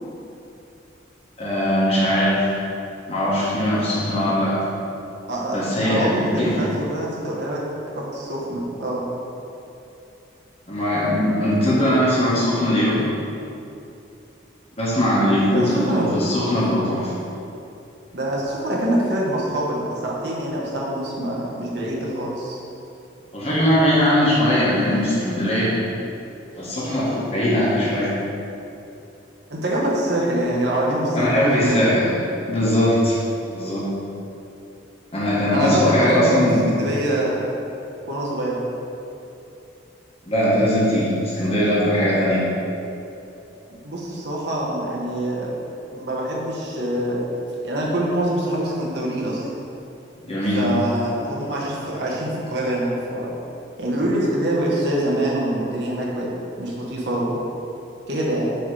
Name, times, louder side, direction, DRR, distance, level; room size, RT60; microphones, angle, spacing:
voice 1, 1.4-2.4 3.1-4.6 5.5-6.7 10.7-13.1 14.8-17.1 23.3-25.7 26.6-28.1 31.1-32.1 32.5-33.2 33.5-33.9 35.1-36.7 40.2-42.4 50.2-50.6, equal, 30° left, -7 dB, 1.3 m, -20 dB
voice 2, 5.8-7.6 7.9-9.0 15.5-16.0 18.1-22.6 29.5-31.9 35.5-37.4 38.1-38.6 43.8-45.5 45.9-47.2 47.6-49.5 50.5-53.3 53.8-56.3 56.6-57.4 58.1-58.5, right 1 dB, 60° right, -4 dB, 1.0 m, -25 dB
6.2 x 3.2 x 4.7 m, 2.8 s
head